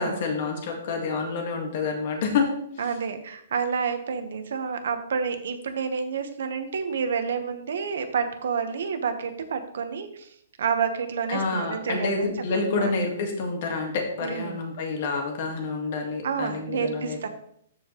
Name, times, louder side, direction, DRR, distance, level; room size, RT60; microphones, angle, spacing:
voice 1, 0.0-2.5 11.3-17.2, left 4 dB, 40° left, 2 dB, 1.7 m, -28 dB
voice 2, 2.8-10.3 10.6-13.0 14.2-14.6 16.2-17.3, right 6 dB, 65° right, 8 dB, 1.1 m, -29 dB
13.5 x 4.9 x 3.1 m, 0.68 s
hypercardioid pair, 180°, 0 cm